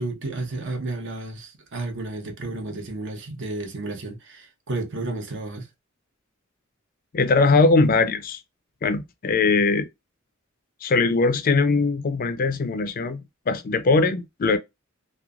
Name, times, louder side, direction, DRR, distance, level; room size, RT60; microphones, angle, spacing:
voice 1, 0.0-5.7, right 2 dB, 60° right, 0.8 m, -32 dB
voice 2, 7.1-8.4 8.8-9.9 10.8-14.6, left 3 dB, 45° left, 0.4 m, -21 dB
3.0 x 2.0 x 2.4 m
head